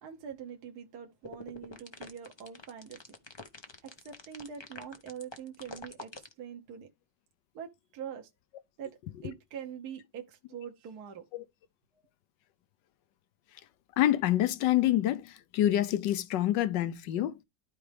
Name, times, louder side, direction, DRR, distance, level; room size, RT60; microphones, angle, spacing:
voice 1, 0.0-3.0 3.8-6.9 7.5-8.3 8.8-11.2, right 8 dB, 60° right, 1.5 m, -44 dB
sound 1, 1.2-6.3, left 3 dB, 30° left, 0.5 m, -46 dB
voice 2, 14.0-17.4, left 13 dB, 75° left, 1.4 m, -27 dB
12.5 x 4.5 x 3.4 m
omnidirectional pair, 2.0 m